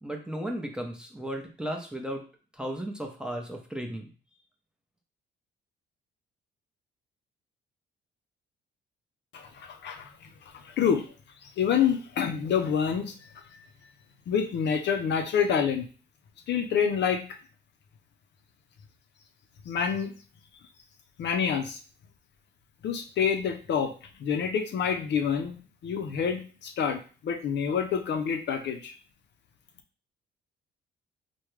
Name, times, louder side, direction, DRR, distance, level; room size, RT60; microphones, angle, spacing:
voice 1, 0.0-2.3 2.5-4.1, right 1 dB, 5° right, 2 dB, 0.7 m, -35 dB
voice 2, 9.3-10.3 10.5-11.1 11.4-13.1 14.3-15.9 16.5-17.2 19.6-20.1 21.2-21.8 22.8-23.9 24.2-28.9, left 7 dB, 60° left, 6 dB, 0.5 m, -27 dB
3.5 x 2.2 x 3.1 m, 0.38 s
cardioid pair, 90°, 20 cm